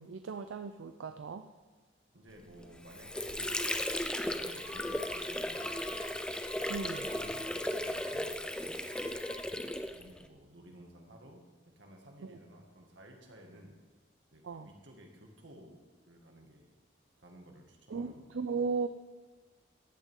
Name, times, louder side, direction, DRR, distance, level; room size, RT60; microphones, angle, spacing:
voice 1, 0.0-1.5 6.7-7.1 14.4-14.7 17.9-18.9, right 5 dB, 85° right, 9 dB, 0.5 m, -36 dB
voice 2, 2.1-3.6 4.1-6.1 6.6-8.3 9.5-11.4 11.8-13.8 14.3-16.7 17.2-18.4, right 1 dB, 70° right, 1 dB, 2.0 m, -55 dB
Water / Sink (filling or washing), 2.6-10.3, left 1 dB, 5° left, 0.4 m, -36 dB
Screaming, 3.4-4.0 4.5-5.2 5.5-6.1 6.4-8.3 8.8-9.5, left 2 dB, 30° left, 2.6 m, -50 dB
14.5 x 11.0 x 3.8 m, 1.3 s
head